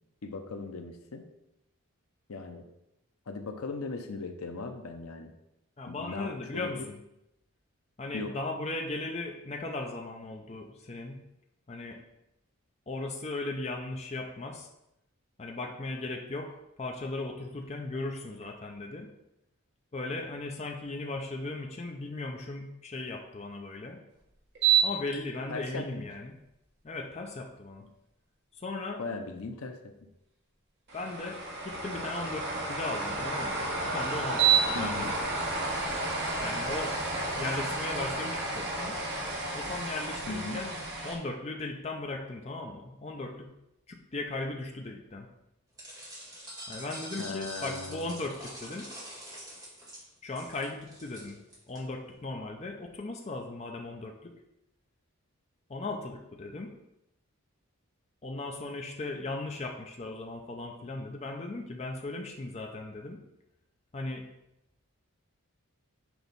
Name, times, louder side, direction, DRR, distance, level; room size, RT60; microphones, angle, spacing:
voice 1, 0.2-1.2 2.3-2.6 3.3-5.3 5.9-6.8 8.1-8.3 25.5-26.0 29.0-29.8 34.7-35.1 40.3-40.6 47.2-48.2, left 3 dB, 80° left, 6 dB, 0.7 m, -38 dB
voice 2, 5.8-7.0 8.0-11.2 11.7-12.0 12.9-14.7 15.4-19.1 19.9-24.0 24.8-26.4 26.8-27.8 28.6-29.0 30.9-35.1 36.4-36.9 37.3-39.0 39.5-40.7 41.0-43.5 43.9-45.3 46.7-48.9 50.2-51.4 51.7-54.3 55.7-56.7 58.2-63.2 63.9-64.2, left 2 dB, 30° left, 2 dB, 0.5 m, -37 dB
sound 1, 24.5-25.1 25.6-25.7 30.9-41.2, right 5 dB, 50° right, 1.5 m, -30 dB
sound 2, 45.8-51.8, equal, 15° right, 2.0 m, -45 dB
6.1 x 3.0 x 5.3 m, 0.86 s
head